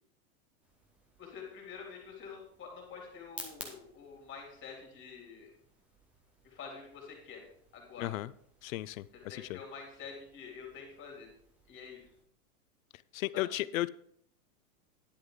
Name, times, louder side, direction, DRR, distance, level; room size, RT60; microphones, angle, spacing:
sound 1, 0.6-12.2, right 1 dB, 5° right, 0.3 m, -55 dB
voice 1, 1.2-5.5 6.4-7.4 7.7-8.1 9.3-11.3 11.7-12.0 13.3-13.5, left 5 dB, 25° left, 1 dB, 2.8 m, -47 dB
voice 2, 8.0-8.3 8.6-9.6 13.1-13.9, left 16 dB, 60° left, 18 dB, 0.5 m, -35 dB
10.0 x 8.0 x 3.7 m, 0.66 s
hypercardioid pair, 140°, 46 cm